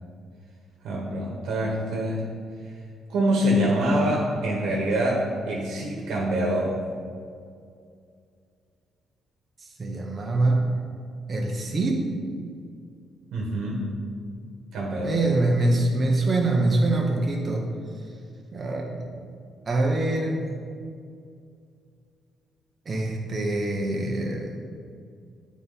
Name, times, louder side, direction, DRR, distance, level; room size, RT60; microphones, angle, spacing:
voice 1, 0.8-2.2 3.1-6.7 13.3-13.9 14.7-15.2, equal, 80° right, -2 dB, 1.3 m, -25 dB
voice 2, 9.8-10.7 11.3-12.1 15.0-17.7 18.5-19.1 19.7-20.6 22.9-24.6, right 2 dB, 35° right, 0 dB, 0.9 m, -24 dB
9.1 x 4.1 x 4.0 m, 2.3 s
cardioid pair, 90°, 0 cm